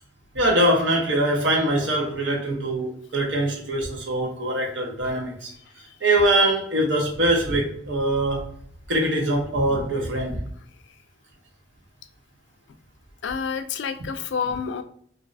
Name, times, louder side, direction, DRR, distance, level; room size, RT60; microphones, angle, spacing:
voice 1, 0.3-5.5 6.0-8.5 8.9-10.4, right 1 dB, 85° right, 0 dB, 0.9 m, -23 dB
voice 2, 13.2-14.8, left 6 dB, 70° left, 9 dB, 0.3 m, -29 dB
3.1 x 2.6 x 2.6 m, 0.62 s
head